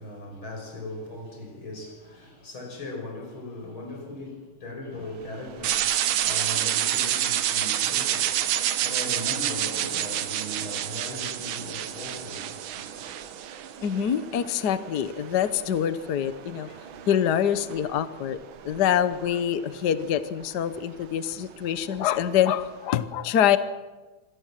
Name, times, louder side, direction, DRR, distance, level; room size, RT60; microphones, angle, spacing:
voice 1, 0.0-13.2, left 1 dB, 40° left, 2 dB, 6.8 m, -39 dB
sound 1, 4.9-22.9, right 7 dB, 55° right, 1.5 m, -44 dB
sound 2, 5.6-13.7, right 11 dB, 90° right, 2.5 m, -27 dB
voice 2, 13.8-16.7 17.1-18.4 18.6-23.6, left 9 dB, 75° left, 12 dB, 0.9 m, -25 dB
26.5 x 18.0 x 7.6 m, 1.2 s
omnidirectional pair, 3.3 m